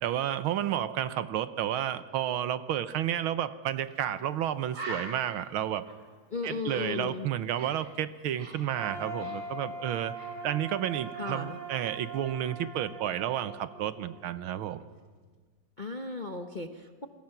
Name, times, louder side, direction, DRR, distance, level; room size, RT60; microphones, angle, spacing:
voice 1, 0.0-5.8 6.4-10.1 10.4-14.8, right 11 dB, 90° right, 13 dB, 1.7 m, -31 dB
Bird, 3.9-4.0 4.3-4.4 4.7-7.9 8.2-9.8 10.1-10.4, right 2 dB, 35° right, 4.3 m, -44 dB
voice 2, 6.3-7.3 11.1-11.6 15.8-17.1, left 3 dB, 40° left, 5 dB, 0.7 m, -36 dB
sound 1, 8.7-14.7, right 3 dB, 60° right, 3.6 m, -41 dB
28.5 x 21.0 x 5.9 m, 1.4 s
omnidirectional pair, 2.2 m